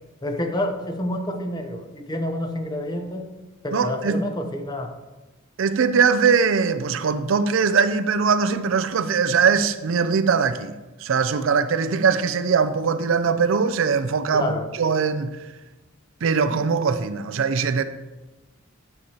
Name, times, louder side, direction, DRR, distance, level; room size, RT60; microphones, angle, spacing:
voice 1, 0.2-3.3 3.6-4.9 14.3-14.7, left 1 dB, 20° left, 0.7 m, -28 dB
voice 2, 3.7-4.2 5.6-10.7 11.0-15.3 16.2-17.8, right 5 dB, 65° right, 0.4 m, -21 dB
9.1 x 6.9 x 2.9 m
head